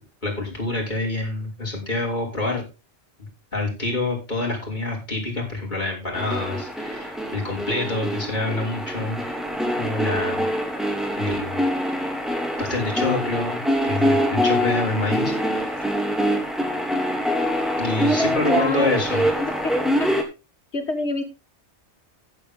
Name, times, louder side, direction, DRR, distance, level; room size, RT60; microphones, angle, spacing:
voice 1, 0.2-2.6 3.2-9.5 9.8-10.4 11.1-11.6 12.6-15.8 17.8-19.2, left 2 dB, 40° left, -2 dB, 5.8 m, -27 dB
sound 1, 6.1-20.2, equal, ahead, 2.7 m, -24 dB
voice 2, 18.5-20.1 20.7-21.2, left 3 dB, 75° left, 6 dB, 2.4 m, -27 dB
15.0 x 8.6 x 3.7 m, 0.28 s
omnidirectional pair, 1.2 m